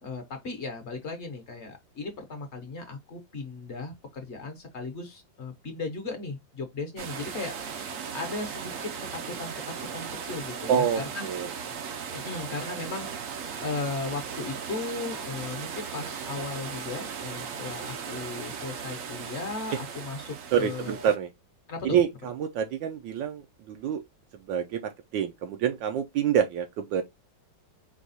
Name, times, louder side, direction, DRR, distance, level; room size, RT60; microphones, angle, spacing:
voice 1, 0.0-9.5 9.8-11.3 12.1-21.0 21.7-22.0, left 3 dB, 45° left, 1.0 m, -36 dB
sound 1, 7.0-21.2, right 6 dB, 65° right, 0.8 m, -37 dB
voice 2, 10.7-11.5 20.5-21.3 21.8-24.0 24.3-27.0, right 8 dB, 80° right, 1.3 m, -27 dB
4.8 x 2.3 x 4.0 m
omnidirectional pair, 2.1 m